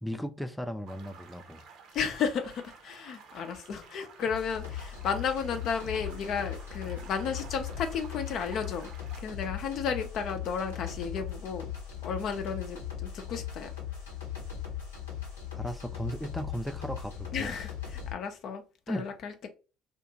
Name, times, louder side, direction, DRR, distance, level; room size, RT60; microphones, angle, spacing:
voice 1, 0.0-1.6 15.5-17.5 18.9-19.0, equal, ahead, 0.4 m, -36 dB
sound 1, 0.9-9.2, right 5 dB, 55° right, 0.7 m, -52 dB
voice 2, 1.9-8.9 9.2-11.7 12.0-13.7 17.3-19.5, left 6 dB, 55° left, 0.6 m, -33 dB
sound 2, 4.2-18.1, left 9 dB, 85° left, 0.8 m, -39 dB
2.5 x 2.4 x 2.9 m
hypercardioid pair, 60°, 0 cm